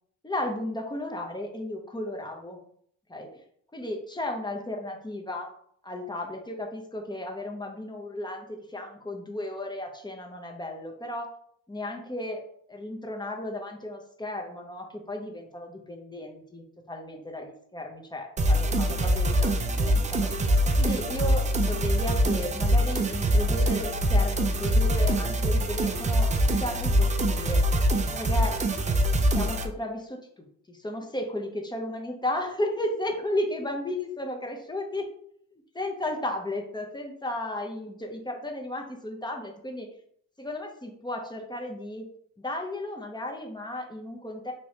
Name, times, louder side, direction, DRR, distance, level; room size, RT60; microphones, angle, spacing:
voice 1, 0.2-2.6 3.1-3.3 3.7-5.5 5.8-11.3 11.7-12.4 12.7-20.3 20.8-27.6 28.1-28.6 29.3-35.1 35.7-39.9 40.4-42.0 42.4-44.5, left 1 dB, 10° left, 2 dB, 0.7 m, -34 dB
sound 1, 18.4-29.7, equal, 20° right, 0.3 m, -24 dB
3.1 x 3.1 x 2.8 m, 0.65 s
cardioid pair, 80°, 35 cm